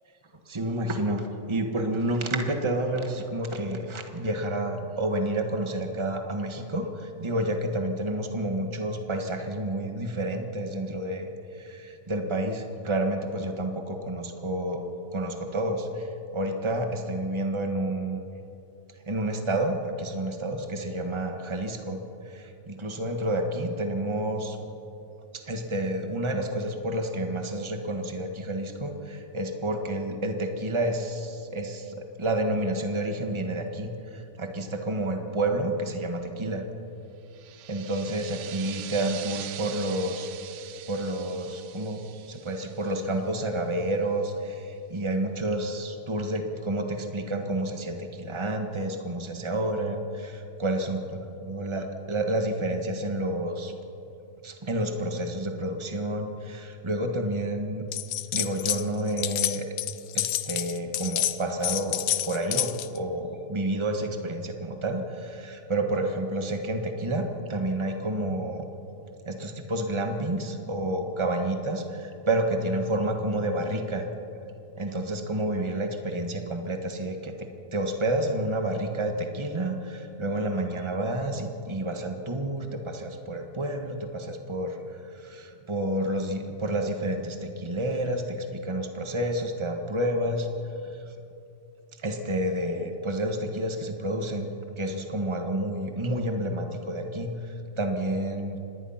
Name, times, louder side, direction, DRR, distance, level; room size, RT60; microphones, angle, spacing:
voice 1, 0.5-14.8 15.1-18.2 19.1-24.6 25.3-36.7 37.7-40.3 40.9-51.0 51.4-53.7 54.4-57.9 58.3-59.7 60.1-68.6 69.2-74.0 74.8-77.3 77.7-84.8 85.2-88.4 88.6-90.5 92.0-98.6, right 1 dB, 35° right, 5 dB, 0.4 m, -29 dB
sound 1, 37.3-43.6, right 12 dB, 75° right, 2.0 m, -43 dB
sound 2, 57.9-58.8 59.1-63.0, left 13 dB, 90° left, 1.2 m, -29 dB
26.0 x 19.5 x 5.8 m, 2.8 s
omnidirectional pair, 3.3 m